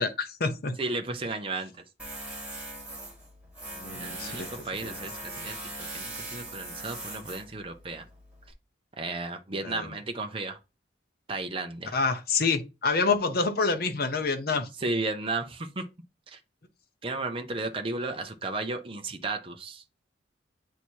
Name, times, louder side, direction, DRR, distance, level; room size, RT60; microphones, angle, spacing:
voice 1, 0.0-0.8 3.7-4.5 4.8-5.0 5.4-5.5 9.6-9.9 11.9-14.7, left 4 dB, 55° left, 0.8 m, -27 dB
voice 2, 0.8-1.7 4.0-5.6 5.9-8.1 9.0-10.6 11.3-11.9 14.8-15.8 16.3-16.4 17.0-19.8, right 3 dB, 30° right, 0.6 m, -34 dB
Tools, 2.0-8.5, right 1 dB, 5° right, 1.6 m, -41 dB
8.2 x 2.9 x 4.5 m
head